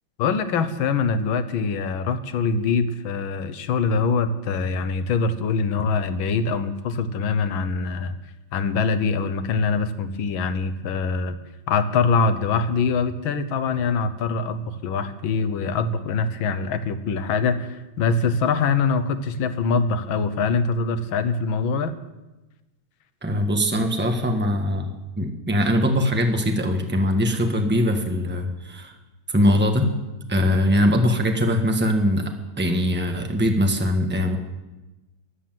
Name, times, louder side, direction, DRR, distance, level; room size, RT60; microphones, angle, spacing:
voice 1, 0.2-8.2 8.5-11.4 11.7-22.0, left 4 dB, 80° left, 11 dB, 1.8 m, -23 dB
voice 2, 23.2-24.9 25.2-28.9 29.3-29.8 30.3-32.2 32.6-34.4, equal, 5° right, 4 dB, 1.2 m, -21 dB
15.5 x 11.5 x 7.6 m, 1.1 s
omnidirectional pair, 2.2 m